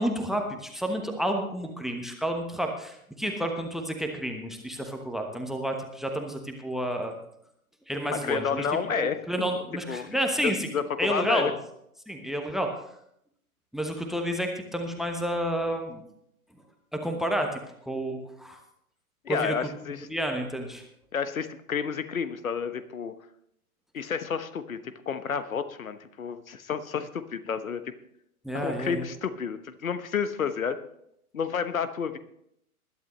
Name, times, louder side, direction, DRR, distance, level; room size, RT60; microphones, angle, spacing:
voice 1, 0.0-7.1 7.9-8.6 8.9-10.7 11.0-11.5 12.1-12.7 13.7-16.0 16.9-17.6 17.9-18.6 19.3-19.7 20.1-20.8 28.4-29.1, right 1 dB, ahead, 5 dB, 1.1 m, -30 dB
voice 2, 8.1-9.5 9.9-11.5 19.2-20.1 21.1-23.1 23.9-27.9 28.5-30.8 31.3-32.2, left 6 dB, 65° left, 12 dB, 1.2 m, -30 dB
20.5 x 11.5 x 3.2 m, 0.73 s
figure-of-eight pair, 115°, 45 cm